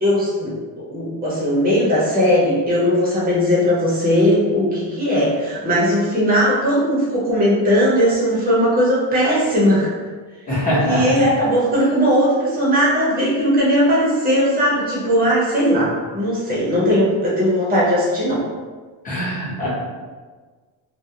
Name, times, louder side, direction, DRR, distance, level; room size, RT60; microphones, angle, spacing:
voice 1, 0.0-9.9 10.8-18.4, equal, 20° right, -6 dB, 0.7 m, -18 dB
voice 2, 10.5-11.2 19.0-19.7, equal, 20° left, -9 dB, 0.9 m, -22 dB
2.3 x 2.0 x 2.8 m, 1.4 s
cardioid pair, 155°, 43 cm